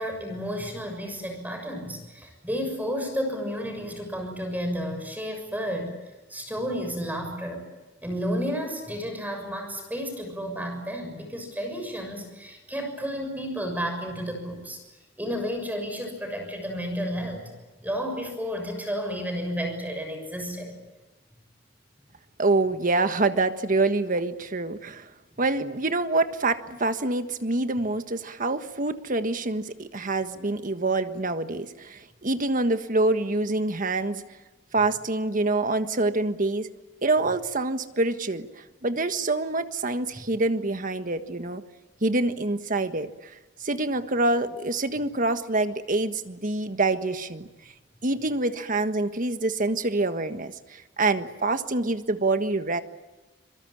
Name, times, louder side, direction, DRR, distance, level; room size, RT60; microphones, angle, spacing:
voice 1, 0.0-5.9 6.3-7.6 8.0-14.8 15.2-17.5 17.8-20.7 40.1-40.2, equal, 10° right, 4 dB, 6.6 m, -32 dB
voice 2, 22.4-25.0 25.4-34.2 34.7-36.7 37.0-38.5 38.8-41.6 42.0-43.1 43.6-47.5 48.0-50.5 51.0-52.8, right 2 dB, 45° right, 9 dB, 1.5 m, -26 dB
26.0 x 23.5 x 8.6 m, 1.1 s
head